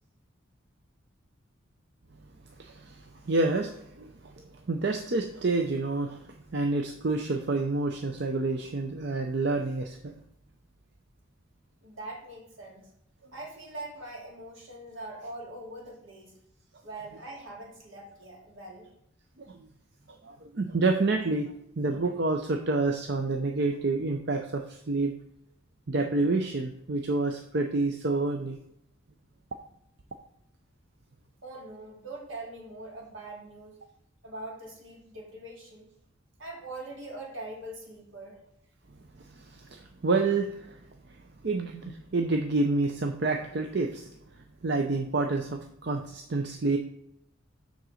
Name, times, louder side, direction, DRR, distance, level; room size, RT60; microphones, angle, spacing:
voice 1, 2.6-4.1 4.4-6.2 6.5-10.1 20.2-25.1 25.9-28.6 39.7-40.7 41.4-44.1 44.6-46.8, right 3 dB, 55° right, 4 dB, 0.6 m, -28 dB
voice 2, 11.8-12.9 13.3-16.4 16.8-18.9 31.4-33.8 34.2-35.9 36.4-38.4, right 2 dB, 75° right, -1 dB, 2.4 m, -42 dB
7.6 x 3.9 x 6.4 m, 0.78 s
head